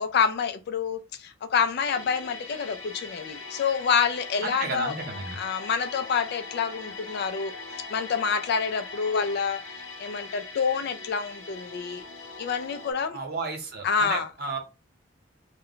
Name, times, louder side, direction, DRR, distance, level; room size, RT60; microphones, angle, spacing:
voice 1, 0.0-4.9 5.3-7.5 7.9-12.0 12.4-13.2 13.8-14.3, left 6 dB, 60° left, 0.4 m, -27 dB
sound 1, 1.8-12.9, left 3 dB, 85° left, 0.7 m, -41 dB
voice 2, 4.4-5.4 13.1-14.6, right 4 dB, 55° right, 0.8 m, -33 dB
2.2 x 2.1 x 3.7 m
head